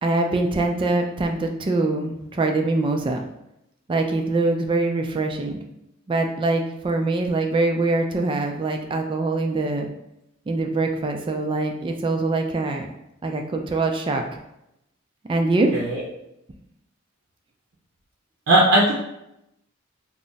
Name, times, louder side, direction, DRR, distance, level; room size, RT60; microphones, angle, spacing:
voice 1, 0.0-3.2 3.9-5.6 6.1-9.9 10.5-12.9 13.2-14.2 15.3-15.7, right 2 dB, 25° right, 3 dB, 0.3 m, -23 dB
voice 2, 18.5-18.9, right 1 dB, 80° right, -5 dB, 0.6 m, -17 dB
2.4 x 2.0 x 3.9 m, 0.84 s
head